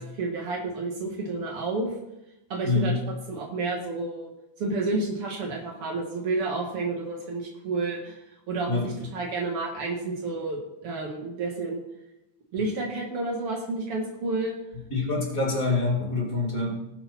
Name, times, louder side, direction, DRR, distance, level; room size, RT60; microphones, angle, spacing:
voice 1, 0.0-1.9 2.5-3.0 3.3-4.3 4.6-8.2 8.5-11.8 12.5-14.6, right 3 dB, 85° right, -1 dB, 1.2 m, -30 dB
voice 2, 2.6-3.0 8.7-8.9 14.9-16.7, left 3 dB, 25° left, -2 dB, 2.0 m, -25 dB
20.0 x 6.8 x 4.4 m, 0.90 s
omnidirectional pair, 5.4 m